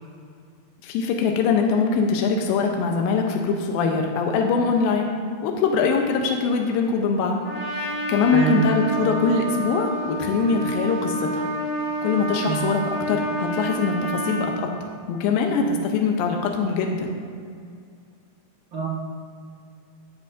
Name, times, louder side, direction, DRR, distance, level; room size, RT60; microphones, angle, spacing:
voice 1, 0.8-5.1 5.4-7.4 7.7-11.5 12.0-12.8 13.1-14.5 14.8-17.1, left 5 dB, 85° left, 2 dB, 2.4 m, -23 dB
Trumpet, 7.4-14.6, right 1 dB, 30° left, 2.0 m, -29 dB
voice 2, 8.3-8.6 12.5-12.6 18.7-18.9, right 8 dB, 70° right, -7 dB, 1.1 m, -25 dB
13.5 x 7.4 x 2.5 m, 2.2 s
omnidirectional pair, 4.1 m